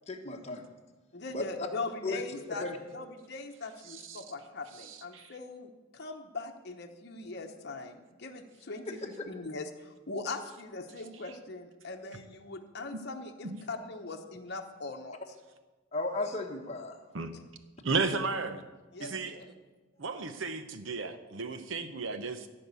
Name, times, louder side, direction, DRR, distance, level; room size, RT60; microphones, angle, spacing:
voice 1, 0.1-0.7 1.3-1.7 2.0-2.2 2.5-2.8 15.9-17.0, left 2 dB, 30° left, 2 dB, 1.2 m, -35 dB
voice 2, 1.1-2.7 2.9-15.2 18.9-19.5, left 3 dB, 55° left, 3 dB, 1.0 m, -41 dB
voice 3, 3.9-4.2 4.8-5.3 13.4-13.6 17.1-17.3 17.8-18.6 19.0-19.3 20.0-22.5, right 4 dB, 65° right, 9 dB, 0.9 m, -34 dB
15.0 x 5.4 x 8.2 m, 1.2 s
head